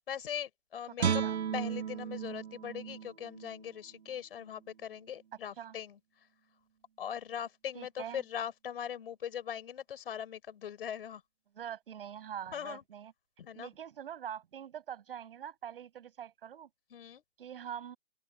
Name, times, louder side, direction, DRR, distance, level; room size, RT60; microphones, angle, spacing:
voice 1, 0.0-1.2 1.5-6.0 7.0-11.2 12.5-12.8 13.4-13.7 16.9-17.2, left 9 dB, 60° left, 4.8 m, -40 dB
voice 2, 0.9-1.4 5.6-5.8 7.7-8.2 11.5-13.1 13.5-16.7 17.4-18.0, right 9 dB, 55° right, 7.9 m, -44 dB
Guitar, 1.0-4.1 4.6-4.7, right 8 dB, 75° right, 2.1 m, -35 dB
open air
hypercardioid pair, 155°, 33 cm